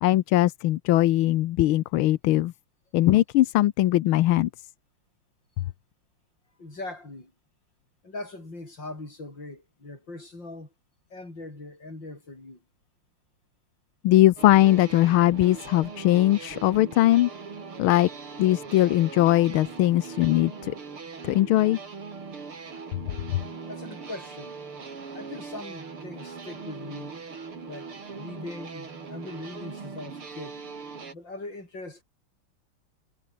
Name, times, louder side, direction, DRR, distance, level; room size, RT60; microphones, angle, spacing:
voice 1, 0.0-2.5 2.9-4.5 14.0-17.3 17.8-18.1 18.4-20.7 21.2-21.8 23.3-23.4, left 15 dB, 75° left, 1.6 m, -20 dB
voice 2, 6.6-7.3 8.0-10.7 11.1-12.6 23.7-24.6 25.1-27.2 27.6-30.6 31.1-32.0, left 2 dB, 55° left, 8.2 m, -40 dB
sound 1, 14.4-31.1, right 5 dB, 80° right, 4.4 m, -40 dB
omnidirectional pair, 2.4 m